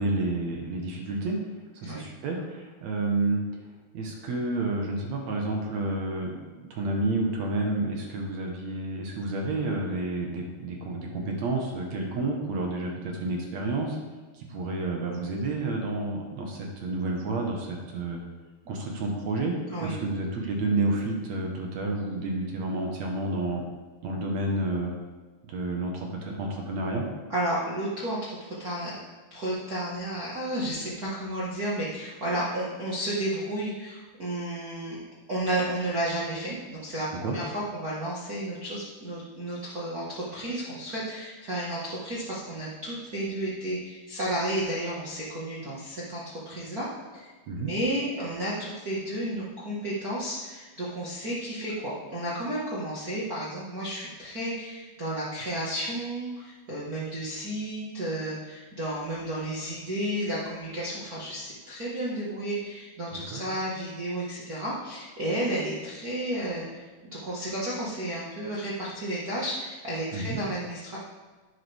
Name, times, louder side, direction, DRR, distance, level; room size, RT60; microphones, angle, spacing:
voice 1, 0.0-1.4 1.8-3.4 3.9-14.0 14.3-18.2 18.7-19.6 19.8-23.6 24.0-25.0 25.5-27.1 37.2-37.4 47.5-47.7 63.1-63.4 70.1-70.4, right 2 dB, 60° right, 1 dB, 2.0 m, -30 dB
voice 2, 27.3-29.0 29.3-35.0 35.3-46.9 47.1-66.9 67.2-71.0, right 1 dB, 75° right, -8 dB, 0.8 m, -32 dB
10.5 x 9.6 x 3.5 m, 1.3 s
omnidirectional pair, 4.5 m